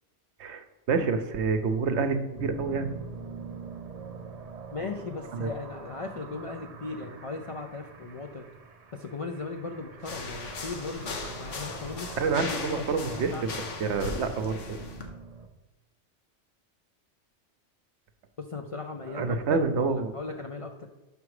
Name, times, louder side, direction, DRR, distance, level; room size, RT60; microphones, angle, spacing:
voice 1, 0.9-2.9 5.3-5.5 12.2-14.8 19.1-20.1, right 4 dB, 70° right, 8 dB, 0.9 m, -28 dB
sound 1, 2.3-15.5, right 5 dB, 45° right, 0.5 m, -45 dB
voice 2, 4.7-8.4 8.9-11.1 11.4-13.6 18.4-20.9, left 3 dB, 55° left, 3 dB, 0.3 m, -37 dB
sound 2, 10.0-15.1, left 3 dB, 80° left, 1.3 m, -38 dB
6.0 x 5.1 x 4.8 m, 1.1 s
omnidirectional pair, 1.2 m